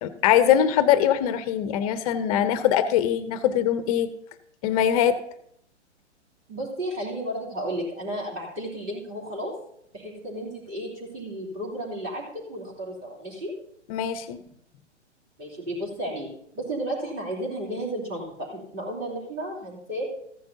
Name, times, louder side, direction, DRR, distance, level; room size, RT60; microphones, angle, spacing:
voice 1, 0.0-4.1 4.6-5.2 13.9-14.4, left 10 dB, 30° left, 13 dB, 0.7 m, -22 dB
voice 2, 6.5-9.5 9.9-13.5 15.4-16.3 16.5-20.0, right 1 dB, 25° right, -4 dB, 3.0 m, -33 dB
14.5 x 9.6 x 2.7 m, 0.73 s
figure-of-eight pair, 120°, 36 cm